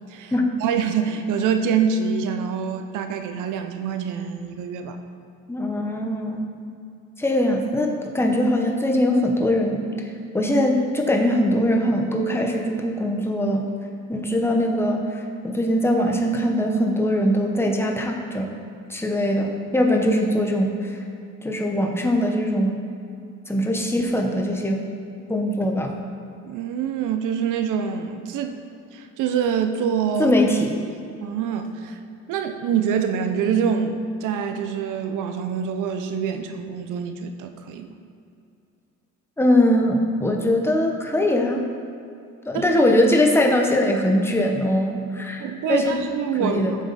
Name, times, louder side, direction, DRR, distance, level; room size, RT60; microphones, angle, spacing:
voice 1, 0.6-5.0 26.4-28.6 28.9-30.3 31.2-32.0 32.3-38.0 42.5-42.6 45.4-46.8, right 7 dB, 90° right, 7 dB, 0.8 m, -25 dB
voice 2, 5.5-6.5 7.2-13.7 14.1-18.5 18.9-21.0 21.4-22.8 23.5-24.8 25.3-25.9 30.2-30.8 39.4-41.6 42.5-46.0 46.4-46.7, left 1 dB, 10° left, 1 dB, 1.2 m, -21 dB
10.0 x 7.3 x 4.2 m, 2.6 s
cardioid pair, 90°, 30 cm